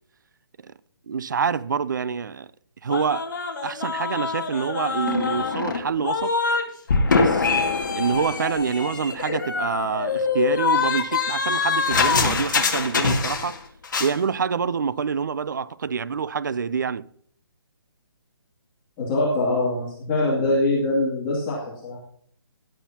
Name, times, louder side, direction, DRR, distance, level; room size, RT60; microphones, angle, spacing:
voice 1, 1.1-2.5 2.8-3.2 3.6-6.3 7.0-7.5 7.9-13.6 14.0-17.1, right 6 dB, 50° right, 0.5 m, -26 dB
sound 1, 2.9-6.6 6.9-13.6 13.8-14.1, left 5 dB, 45° left, 2.1 m, -24 dB
voice 2, 19.0-22.0, left 2 dB, 15° left, 2.4 m, -23 dB
16.0 x 11.5 x 2.9 m
hypercardioid pair, 175°, 13 cm